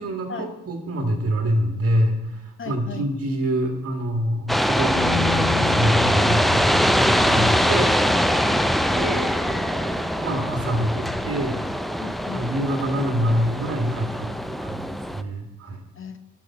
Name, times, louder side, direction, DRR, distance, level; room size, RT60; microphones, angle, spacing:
voice 1, 0.0-8.0 8.9-11.6 12.3-15.8, equal, 50° right, 3 dB, 1.8 m, -26 dB
voice 2, 2.6-3.1 12.0-12.5 16.0-16.2, left 5 dB, 45° left, 8 dB, 0.9 m, -37 dB
sound 1, 4.5-15.2, equal, ahead, 0.4 m, -22 dB
sound 2, 4.9-11.2, left 4 dB, 80° left, 1.2 m, -32 dB
10.5 x 5.0 x 6.0 m, 0.98 s
cardioid pair, 90°, 30 cm